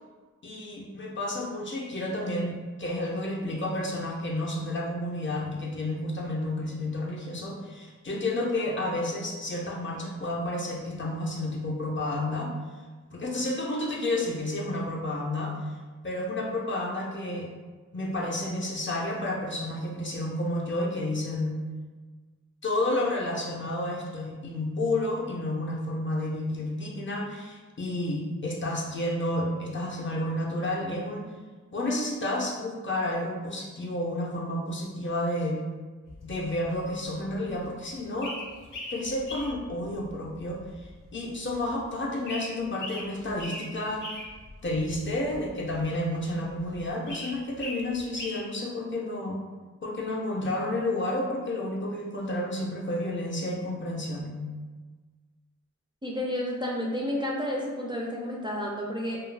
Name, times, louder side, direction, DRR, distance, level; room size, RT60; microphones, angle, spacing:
voice 1, 0.4-12.5 13.1-15.5 16.0-17.5 17.9-21.6 22.6-31.3 31.7-35.6 36.2-38.4 38.9-44.0 44.6-49.4 49.8-54.4, left 1 dB, 40° left, -2 dB, 0.5 m, -31 dB
sound 1, 36.1-48.4, left 1 dB, 90° left, 0.6 m, -42 dB
voice 2, 56.0-59.2, left 1 dB, 15° right, -4 dB, 0.3 m, -31 dB
2.3 x 2.2 x 3.2 m, 1.4 s
wide cardioid pair, 100°, 30 cm